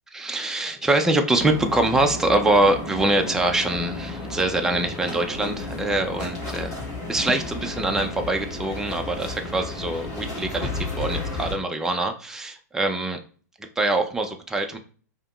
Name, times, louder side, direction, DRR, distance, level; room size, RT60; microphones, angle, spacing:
voice 1, 0.1-6.8 7.1-13.2 13.8-14.8, right 2 dB, 5° right, 4 dB, 0.5 m, -24 dB
sound 1, 1.4-11.5, left 2 dB, 30° left, 2.0 m, -33 dB
5.1 x 2.9 x 2.3 m, 0.41 s
hypercardioid pair, 120°, 9 cm